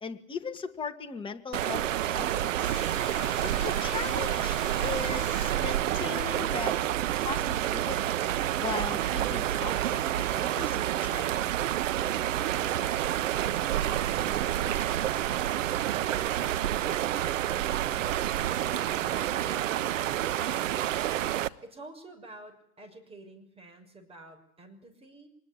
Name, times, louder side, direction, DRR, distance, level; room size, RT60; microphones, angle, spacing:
voice 1, 0.0-2.8 3.4-6.8 7.2-8.2 8.6-11.2, left 5 dB, 15° left, 4 dB, 2.2 m, -38 dB
sound 1, 1.5-21.5, right 12 dB, 75° right, 1.3 m, -29 dB
sound 2, 2.6-7.1 7.6-10.6, left 13 dB, 45° left, 2.4 m, -47 dB
voice 2, 13.7-14.9 21.6-25.3, right 2 dB, 15° right, 6 dB, 6.2 m, -49 dB
24.5 x 21.0 x 10.0 m, 0.67 s
hypercardioid pair, 130°, 39 cm